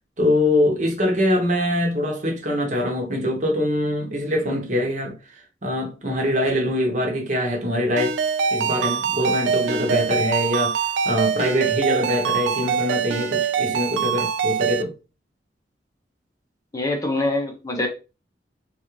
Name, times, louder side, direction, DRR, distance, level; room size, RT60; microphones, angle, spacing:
voice 1, 0.2-5.1 5.6-8.2 8.5-14.9, left 1 dB, 40° right, 0.9 m, -23 dB
Ringtone, 8.0-14.8, right 6 dB, 90° right, 0.4 m, -24 dB
voice 2, 16.7-17.9, left 2 dB, 20° left, 0.6 m, -24 dB
3.7 x 2.4 x 3.0 m
head